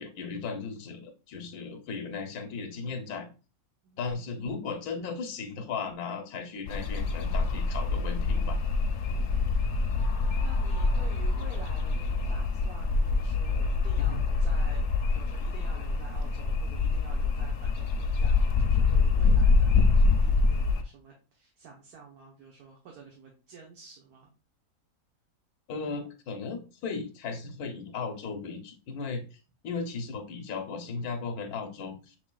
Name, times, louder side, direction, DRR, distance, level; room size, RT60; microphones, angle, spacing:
voice 1, 0.0-3.3 4.0-8.6 14.0-14.2 25.7-32.1, left 4 dB, 85° left, 4 dB, 1.2 m, -36 dB
sound 1, 6.7-20.8, left 4 dB, 60° left, 0.8 m, -25 dB
voice 2, 9.0-9.9 10.2-14.8 15.1-24.3, right 5 dB, 85° right, 0 dB, 1.4 m, -50 dB
6.1 x 3.9 x 2.2 m, 0.33 s
omnidirectional pair, 1.5 m